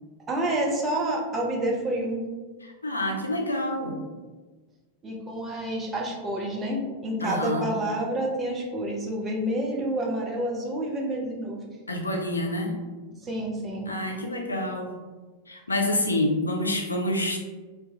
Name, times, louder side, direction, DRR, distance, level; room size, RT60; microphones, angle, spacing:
voice 1, 0.3-2.2 5.0-11.6 13.2-13.9, right 1 dB, 20° right, -1 dB, 0.6 m, -28 dB
voice 2, 2.6-4.0 7.2-7.7 11.9-12.8 13.9-14.9 15.5-17.4, left 1 dB, 80° left, 2 dB, 0.4 m, -27 dB
2.7 x 2.2 x 3.0 m, 1.3 s
figure-of-eight pair, 90°, 0 cm